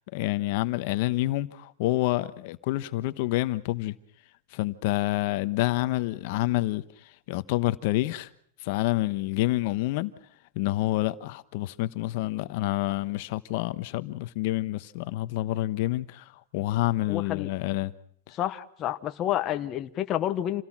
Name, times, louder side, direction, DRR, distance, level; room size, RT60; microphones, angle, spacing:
voice 1, 0.1-3.9 4.5-8.3 8.6-10.1 10.5-17.9 18.3-18.4, left 17 dB, 50° left, 1.0 m, -28 dB
voice 2, 17.1-17.5 18.3-20.6, left 12 dB, 25° left, 1.0 m, -29 dB
28.0 x 17.5 x 6.1 m
supercardioid pair, 165°, 0 cm